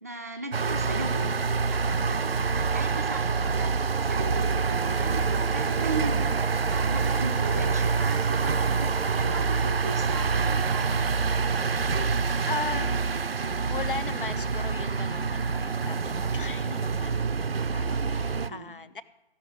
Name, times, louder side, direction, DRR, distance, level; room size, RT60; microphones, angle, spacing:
voice 1, 0.0-1.3 1.7-3.7 4.0-6.4 6.7-11.1 18.3-18.7, right 3 dB, 15° right, 3 dB, 0.6 m, -37 dB
sound 1, 0.5-18.5, right 4 dB, 65° right, 0.6 m, -26 dB
voice 2, 7.5-7.9 10.5-10.6 12.0-13.0 13.4-19.0, left 4 dB, 55° left, 14 dB, 0.8 m, -38 dB
15.5 x 6.0 x 7.7 m, 1.1 s
figure-of-eight pair, 150°, 32 cm